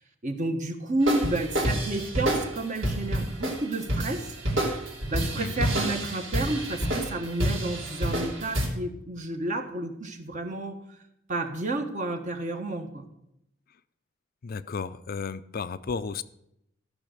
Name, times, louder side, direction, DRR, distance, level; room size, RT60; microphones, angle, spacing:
voice 1, 0.2-4.3 5.1-10.8 11.3-13.0, right 2 dB, 40° right, 5 dB, 1.4 m, -31 dB
sound 1, 1.0-8.7, right 1 dB, 75° right, 3.0 m, -29 dB
voice 2, 5.4-5.7 14.4-16.2, left 5 dB, 50° left, 12 dB, 0.5 m, -33 dB
14.0 x 6.3 x 6.5 m, 0.79 s
head